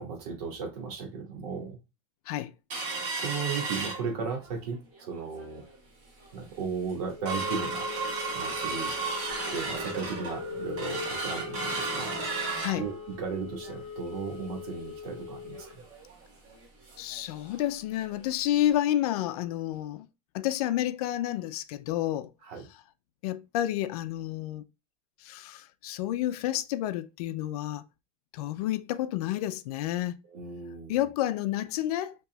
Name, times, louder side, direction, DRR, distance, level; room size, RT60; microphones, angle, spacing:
voice 1, 0.0-1.8 3.2-4.8 5.1-5.6 6.3-7.9 8.3-8.9 9.5-12.2 12.8-15.7 22.4-22.7 30.3-31.1, right 5 dB, 70° right, 1.8 m, -35 dB
sound 1, 2.7-4.6 5.0-5.1 5.4-5.8 6.2-6.3 6.7-17.2 17.5-17.6 18.0-18.2 18.7-18.8, right 2 dB, 35° right, 1.6 m, -34 dB
voice 2, 17.0-20.1 20.3-22.3 23.2-24.6 25.2-27.8 28.3-30.2 30.9-32.1, left 13 dB, 70° left, 0.5 m, -30 dB
5.6 x 2.9 x 2.3 m
supercardioid pair, 170°, 20 cm